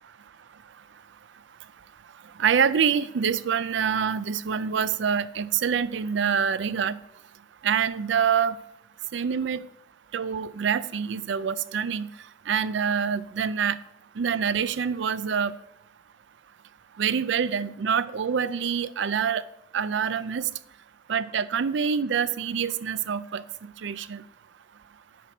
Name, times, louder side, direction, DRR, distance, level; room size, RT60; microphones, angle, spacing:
voice 1, 2.4-7.0 7.6-8.5 9.1-9.6 10.1-12.1 12.5-13.8 14.2-15.5 17.0-19.4 19.7-20.5 21.1-23.4 23.8-24.2, right 7 dB, 75° right, 0.4 m, -26 dB
9.1 x 4.4 x 5.9 m
head